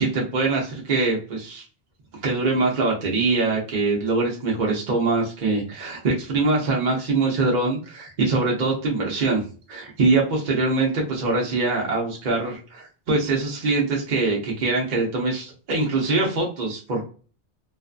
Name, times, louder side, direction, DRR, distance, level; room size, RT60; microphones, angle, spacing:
voice 1, 0.0-1.6 2.2-9.4 9.7-17.0, right 3 dB, 50° right, -2 dB, 0.6 m, -23 dB
2.5 x 2.3 x 2.4 m, 0.37 s
omnidirectional pair, 1.2 m